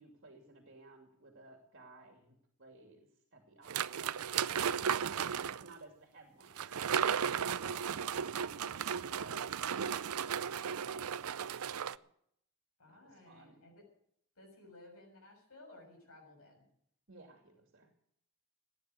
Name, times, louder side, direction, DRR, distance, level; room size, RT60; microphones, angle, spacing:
voice 1, 0.0-6.8 7.6-7.9 8.4-9.8 10.7-12.0 12.9-13.6 17.1-17.9, right 2 dB, 55° right, 2 dB, 2.6 m, -57 dB
sound 1, 3.7-5.7 6.6-12.0, right 8 dB, 85° right, 0.5 m, -35 dB
voice 2, 12.8-13.8 14.4-16.7, left 2 dB, 80° left, 0 dB, 7.1 m, -57 dB
15.5 x 9.9 x 8.0 m, 0.70 s
head